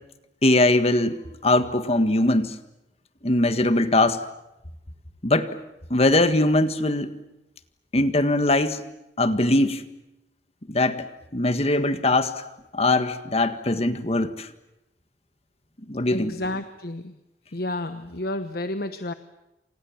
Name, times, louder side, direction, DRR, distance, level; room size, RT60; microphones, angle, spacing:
voice 1, 0.4-1.2 1.4-2.5 3.2-4.2 5.2-5.5 5.9-7.1 7.9-8.8 9.2-9.8 10.7-11.0 11.3-12.3 12.7-14.5 15.9-16.3, left 2 dB, 35° left, 10 dB, 1.7 m, -21 dB
voice 2, 16.1-17.1 17.5-19.1, left 1 dB, 60° left, 10 dB, 1.1 m, -30 dB
29.0 x 26.5 x 7.4 m, 0.93 s
head